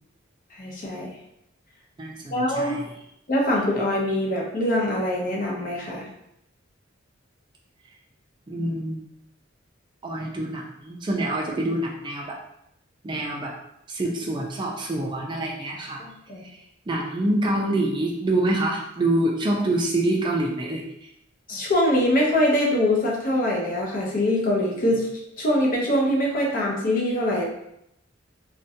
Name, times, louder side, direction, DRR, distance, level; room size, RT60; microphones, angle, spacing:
voice 1, 0.6-1.1 2.3-2.8 3.3-6.1 16.0-16.4 21.5-25.1 25.4-27.5, left 1 dB, 45° left, -2 dB, 0.6 m, -23 dB
voice 2, 2.0-2.8 8.5-9.1 10.0-12.4 13.0-13.5 13.9-16.0 16.9-20.8, right 1 dB, 25° right, -1 dB, 0.3 m, -26 dB
2.6 x 2.1 x 2.7 m, 0.78 s
head